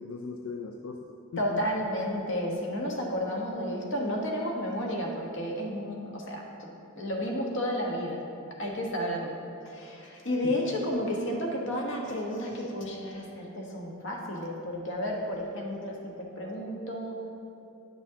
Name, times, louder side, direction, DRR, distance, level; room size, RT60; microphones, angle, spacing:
voice 1, 0.0-1.8 10.4-10.8 11.3-11.7, left 4 dB, 75° left, 3 dB, 0.4 m, -40 dB
voice 2, 1.4-6.5 7.0-8.2 8.6-9.4 9.6-17.2, equal, 60° left, 0 dB, 1.1 m, -32 dB
10.0 x 6.1 x 2.8 m, 2.7 s
head